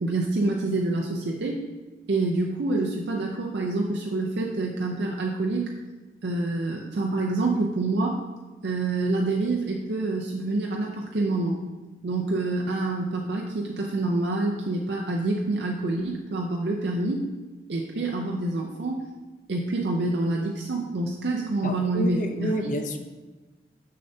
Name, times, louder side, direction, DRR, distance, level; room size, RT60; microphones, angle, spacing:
voice 1, 0.0-1.6 2.1-5.7 6.2-8.2 8.6-11.6 12.0-17.2 17.7-19.1 19.5-22.5, right 2 dB, 75° right, -1 dB, 0.5 m, -27 dB
voice 2, 21.6-23.0, equal, 45° left, 6 dB, 0.5 m, -29 dB
6.6 x 6.6 x 2.7 m, 1.2 s
head